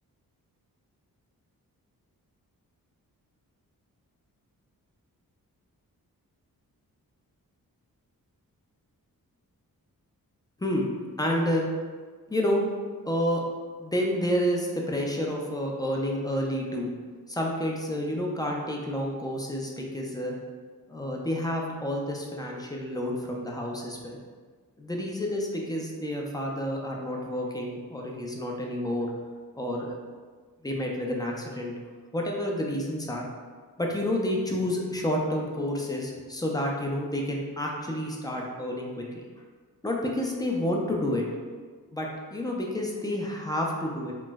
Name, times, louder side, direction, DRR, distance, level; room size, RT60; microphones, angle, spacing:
voice 1, 11.2-11.6 12.3-12.6 13.1-13.4 13.8-16.9 17.3-20.4 20.9-24.2 24.8-29.1 29.6-30.0 30.6-31.7 32.1-33.2 33.8-39.2 39.8-41.2 41.9-44.1, left 1 dB, 10° left, -1 dB, 0.4 m, -29 dB
3.0 x 2.0 x 3.3 m, 1.5 s
wide cardioid pair, 100°, 35 cm